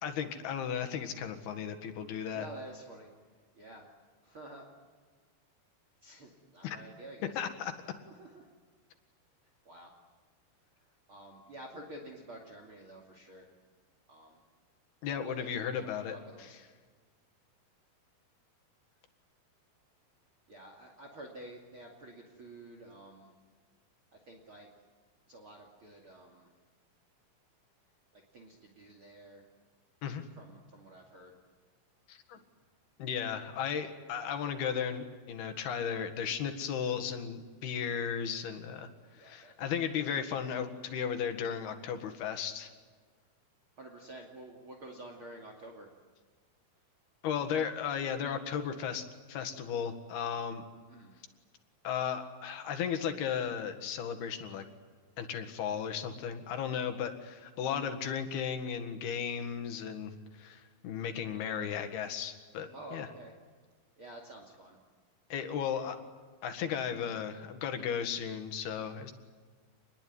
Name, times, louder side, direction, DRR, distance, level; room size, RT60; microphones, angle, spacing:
voice 1, 0.0-2.5 6.6-6.8 7.4-7.7 15.0-16.6 30.0-30.3 32.1-32.4 33.0-38.9 39.2-42.7 47.2-50.6 51.8-54.6 55.2-63.1 65.3-66.0 66.4-69.1, left 7 dB, 80° left, 7 dB, 3.8 m, -35 dB
voice 2, 2.3-3.1 3.5-3.9 4.2-4.6 6.0-7.3 8.0-8.5 9.6-9.9 11.1-13.5 14.1-14.4 15.4-16.6 20.5-23.3 24.3-24.7 25.3-26.5 28.1-29.4 30.4-31.4 32.3-32.4 39.1-39.7 43.8-45.9 50.9-51.1 62.7-63.3 64.0-64.8, right 1 dB, 35° right, 2 dB, 3.0 m, -50 dB
27.5 x 21.0 x 9.5 m, 1.5 s
omnidirectional pair, 4.5 m